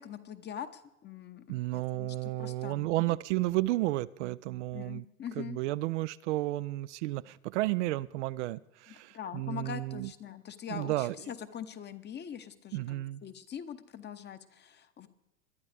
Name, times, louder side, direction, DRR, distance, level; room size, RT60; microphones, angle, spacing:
voice 1, 0.0-1.4 1.7-3.2 4.7-5.6 8.9-15.1, left 9 dB, 25° left, 11 dB, 0.9 m, -43 dB
voice 2, 1.5-5.0 5.4-10.1 10.7-11.2 12.7-13.2, right 18 dB, 60° right, 16 dB, 0.5 m, -32 dB
21.0 x 11.5 x 3.4 m, 0.90 s
hypercardioid pair, 95°, 41 cm